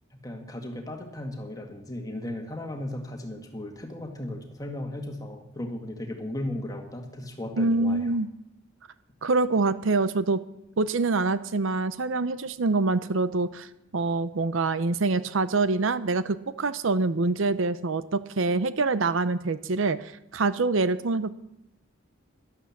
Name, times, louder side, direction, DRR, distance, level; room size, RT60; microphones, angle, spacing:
voice 1, 0.1-8.0, left 1 dB, 15° left, 3 dB, 1.9 m, -36 dB
voice 2, 7.6-8.3 9.2-10.4 10.8-13.7 13.9-21.3, right 3 dB, 70° right, 14 dB, 0.7 m, -25 dB
12.5 x 12.0 x 7.3 m, 0.82 s
head